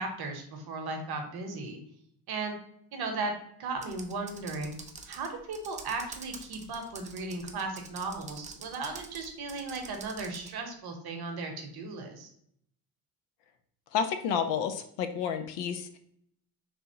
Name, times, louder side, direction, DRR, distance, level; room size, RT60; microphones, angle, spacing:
voice 1, 0.0-1.8 2.3-2.6 2.9-3.3 3.6-4.7 5.0-12.3, right 3 dB, 50° right, 4 dB, 0.9 m, -36 dB
Computer keyboard, 3.8-10.5, right 4 dB, 15° right, 0.4 m, -47 dB
voice 2, 13.9-16.0, left 7 dB, 60° left, 8 dB, 0.6 m, -30 dB
3.5 x 2.7 x 2.8 m, 0.68 s
hypercardioid pair, 55°, 49 cm